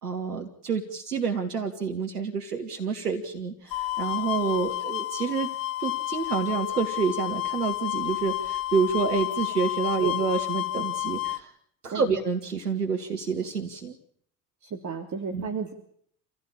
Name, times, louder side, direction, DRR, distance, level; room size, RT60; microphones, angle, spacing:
voice 1, 0.0-5.5 5.8-11.5 11.8-14.0 15.3-15.5, right 5 dB, 90° right, 4 dB, 1.9 m, -28 dB
sound 1, 3.7-11.4, left 15 dB, 50° left, 1.3 m, -30 dB
voice 2, 14.6-15.7, right 6 dB, 40° right, 4 dB, 3.4 m, -32 dB
27.5 x 16.5 x 8.7 m, 0.66 s
hypercardioid pair, 65°, 45 cm